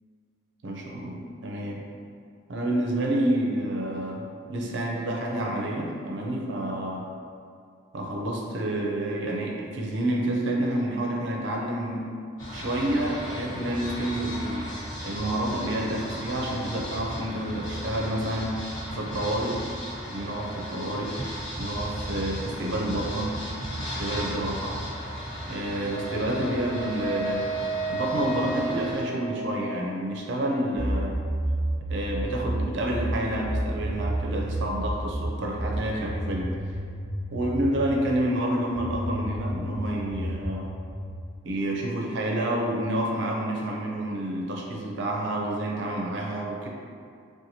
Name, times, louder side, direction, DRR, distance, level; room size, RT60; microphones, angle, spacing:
voice 1, 0.6-1.9 2.5-7.0 7.9-12.1 12.5-14.7 15.0-19.7 20.1-23.3 24.0-24.8 25.5-27.5 27.9-31.2 31.9-36.5 37.3-40.7 41.4-46.7, right 1 dB, 65° right, -1 dB, 0.4 m, -29 dB
sound 1, 12.4-29.0, equal, 75° left, 1.1 m, -36 dB
Wind instrument woodwind instrument, 25.9-30.1, right 3 dB, 40° left, 0.5 m, -33 dB
sound 2, 30.7-38.0 38.7-41.2, right 1 dB, 5° left, 1.2 m, -30 dB
2.8 x 2.2 x 2.7 m, 2.4 s
head